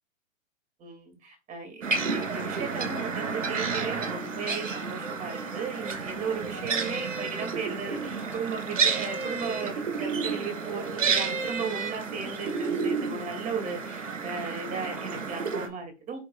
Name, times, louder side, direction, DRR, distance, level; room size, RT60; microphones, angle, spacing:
voice 1, 0.8-16.2, right 5 dB, 20° right, 2.2 m, -36 dB
sound 1, 1.8-15.7, right 5 dB, 70° right, 2.7 m, -31 dB
8.5 x 6.1 x 2.3 m
figure-of-eight pair, 125°, 39 cm